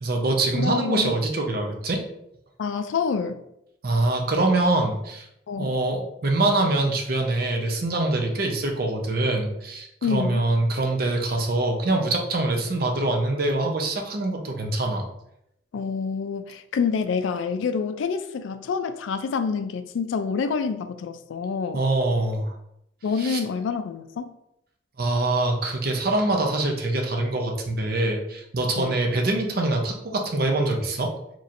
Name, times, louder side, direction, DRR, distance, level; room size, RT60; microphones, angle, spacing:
voice 1, 0.0-2.0 3.8-5.3 5.6-15.0 21.7-22.6 23.2-23.4 25.0-31.1, right 2 dB, 50° right, 2 dB, 0.6 m, -24 dB
voice 2, 0.5-1.1 2.6-3.4 5.5-5.7 10.0-10.5 15.7-21.8 23.0-24.3 28.7-29.0, left 5 dB, 80° left, 9 dB, 0.3 m, -27 dB
4.2 x 3.0 x 2.5 m, 0.80 s
head